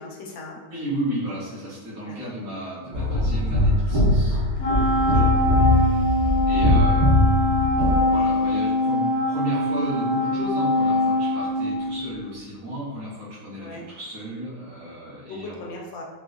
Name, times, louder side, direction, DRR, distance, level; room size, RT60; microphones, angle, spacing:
voice 1, 0.0-0.6 2.1-2.3 4.9-5.3 13.6-13.8 15.3-16.0, left 2 dB, 70° left, -2 dB, 1.0 m, -38 dB
voice 2, 0.7-4.4 5.1-5.4 6.5-7.2 8.1-15.6, equal, 75° right, -10 dB, 1.6 m, -33 dB
sound 1, 2.9-8.0, left 1 dB, 45° right, 0.6 m, -21 dB
Wind instrument woodwind instrument, 4.6-12.2, left 1 dB, 90° left, 1.3 m, -23 dB
4.3 x 2.1 x 2.4 m, 1.3 s
omnidirectional pair, 1.7 m